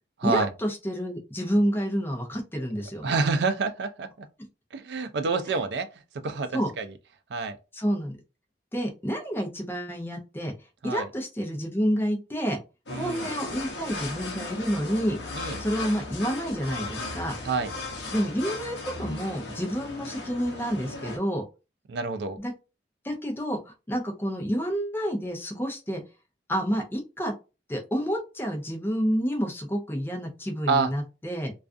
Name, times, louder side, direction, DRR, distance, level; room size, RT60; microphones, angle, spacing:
voice 1, 0.2-3.0 5.5-5.6 6.5-6.7 7.7-8.2 8.7-10.5 10.8-12.6 12.9-15.2 15.6-17.3 18.1-21.4 22.4-22.5 23.0-23.6 23.9-26.0 26.5-27.3 27.7-31.5, equal, 10° left, 0.5 m, -29 dB
voice 2, 3.0-4.3 4.7-5.9 6.2-6.9 7.3-7.6 10.8-11.1 12.9-13.3 15.3-15.6 17.4-17.7 21.9-22.4 30.7-30.9, right 4 dB, 70° right, 0.4 m, -27 dB
sound 1, 12.9-21.2, left 3 dB, 75° left, 0.7 m, -36 dB
2.3 x 2.3 x 2.4 m
head